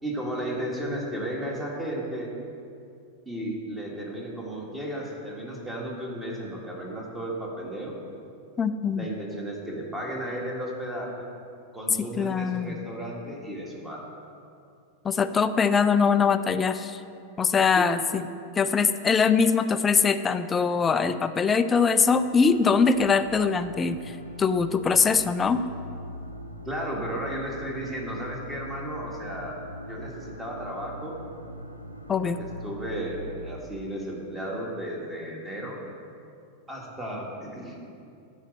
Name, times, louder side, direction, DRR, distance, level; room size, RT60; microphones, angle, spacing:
voice 1, 0.0-2.3 3.2-7.9 8.9-11.3 11.7-14.0 17.7-17.9 26.6-29.6 29.9-31.2 32.2-35.8 36.7-37.8, right 1 dB, 10° right, -2 dB, 1.8 m, -34 dB
voice 2, 8.6-9.1 12.2-12.8 15.0-17.0 17.4-18.2 18.6-24.0 24.4-25.6 32.1-32.4, left 5 dB, 20° left, 11 dB, 0.4 m, -22 dB
sound 1, 21.7-33.6, equal, 85° right, 0.5 m, -41 dB
9.7 x 4.1 x 7.3 m, 2.5 s
figure-of-eight pair, 90°, 0 cm